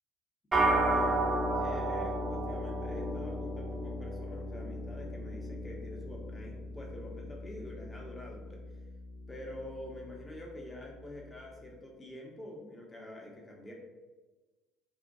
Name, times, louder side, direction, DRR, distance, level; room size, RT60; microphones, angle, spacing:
sound 1, 0.5-10.0, right 1 dB, 30° right, 0.6 m, -34 dB
voice 1, 0.6-1.3 1.6-8.6 9.3-13.7, left 1 dB, 20° left, -1 dB, 0.6 m, -46 dB
2.5 x 2.1 x 2.5 m, 1.2 s
figure-of-eight pair, 55°, 0 cm